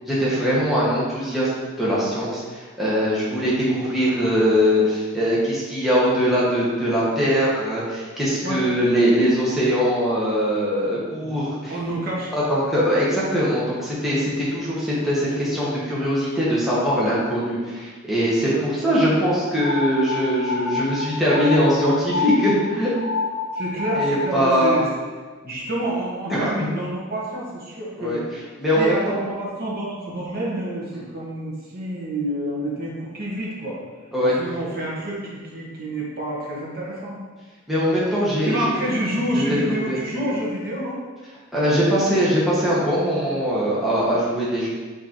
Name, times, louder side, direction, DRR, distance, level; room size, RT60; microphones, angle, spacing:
voice 1, 0.1-1.5 1.8-11.7 12.3-22.9 23.9-24.8 26.3-26.5 28.0-28.2 28.6-29.2 30.9-31.0 34.1-34.4 37.7-38.6 39.3-40.0 41.5-44.7, equal, ahead, -9 dB, 1.4 m, -21 dB
voice 2, 11.7-12.3 14.3-14.5 18.5-18.6 23.5-24.8 25.4-28.3 28.7-33.8 34.2-37.2 38.4-41.0, right 1 dB, 45° right, -6 dB, 1.6 m, -28 dB
sound 1, 19.6-24.5, left 3 dB, 65° right, 1.4 m, -28 dB
5.0 x 4.5 x 4.5 m, 1.4 s
head